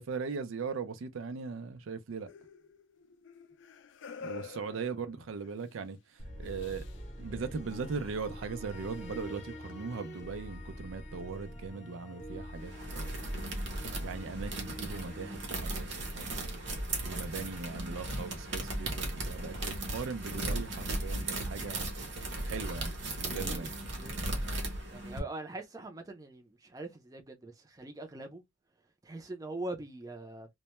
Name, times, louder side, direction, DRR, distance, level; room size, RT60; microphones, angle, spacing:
voice 1, 0.0-2.3 4.2-6.8 7.2-13.2 14.0-16.5 17.0-21.9 22.4-22.9 23.2-23.7, right 5 dB, 85° right, 0.4 m, -39 dB
sound 1, 2.3-5.7 6.4-7.1 8.9-9.0, left 5 dB, 65° left, 0.3 m, -48 dB
sound 2, 6.2-16.4, equal, 40° left, 0.7 m, -45 dB
sound 3, 12.6-25.2, right 2 dB, 60° right, 0.8 m, -36 dB
voice 2, 23.3-24.2 24.9-28.4 29.0-30.5, right 2 dB, 15° right, 0.4 m, -43 dB
2.1 x 2.1 x 2.9 m
head